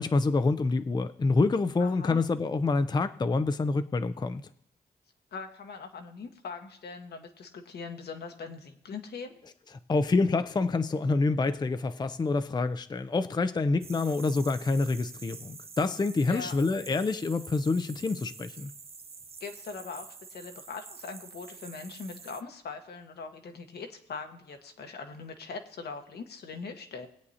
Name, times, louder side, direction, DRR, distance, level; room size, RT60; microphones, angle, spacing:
voice 1, 0.0-4.4 9.9-18.7, left 3 dB, 25° left, 11 dB, 0.5 m, -27 dB
voice 2, 1.8-2.2 5.3-9.4 14.0-14.1 16.3-16.6 19.4-27.1, left 4 dB, 75° left, 5 dB, 1.2 m, -41 dB
sound 1, 13.8-22.4, right 5 dB, 35° right, 0.6 m, -47 dB
21.0 x 8.2 x 2.8 m, 0.72 s
cardioid pair, 75°, 17 cm